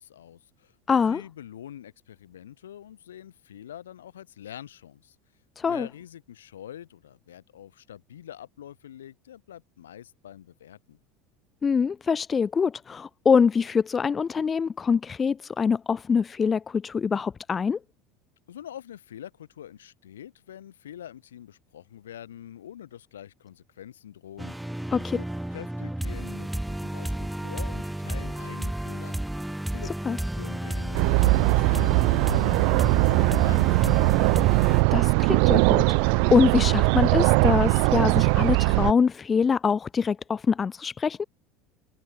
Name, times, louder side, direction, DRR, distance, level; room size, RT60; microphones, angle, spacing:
voice 1, 0.0-5.2 5.6-11.0 18.5-24.8 25.1-25.2 25.5-29.2 29.7-34.1, left 10 dB, 80° left, 2.6 m, -45 dB
voice 2, 0.9-1.2 5.6-5.9 11.6-17.8 24.9-25.2 30.1-30.2 34.9-41.2, left 6 dB, 30° left, 0.6 m, -24 dB
sound 1, 24.4-34.8, right 1 dB, 5° right, 1.5 m, -32 dB
sound 2, 30.9-38.9, right 40 dB or more, 65° right, 0.7 m, -20 dB
hypercardioid pair, 80°, 0 cm